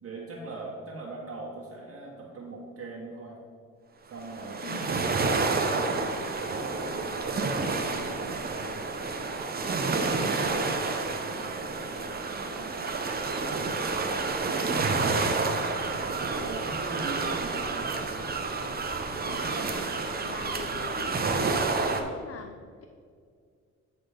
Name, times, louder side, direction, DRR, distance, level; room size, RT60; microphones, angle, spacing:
voice 1, 0.0-3.4 4.0-8.9 9.6-14.6 15.1-15.8 16.4-18.1, right 3 dB, 50° right, -4 dB, 1.7 m, -42 dB
sound 1, 4.2-22.0, right 3 dB, 30° right, 0.8 m, -29 dB
voice 2, 4.6-5.4 10.2-10.8 19.2-22.9, left 6 dB, 50° left, 6 dB, 0.5 m, -44 dB
9.4 x 4.2 x 5.0 m, 2.1 s
cardioid pair, 90°, 30 cm